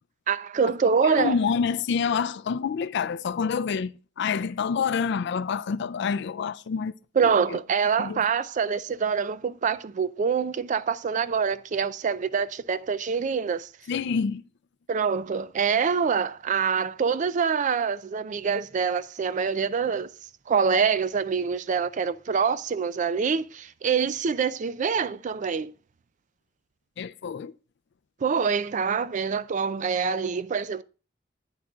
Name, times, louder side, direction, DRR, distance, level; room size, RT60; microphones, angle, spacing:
voice 1, 0.3-1.3 7.2-13.7 14.9-20.1 20.5-25.7 28.2-30.8, right 6 dB, 40° right, 0.4 m, -25 dB
voice 2, 1.0-6.9 7.2-7.6 8.0-8.3 13.9-14.4 27.0-27.5, left 6 dB, 65° left, 0.4 m, -27 dB
11.0 x 8.8 x 2.3 m
head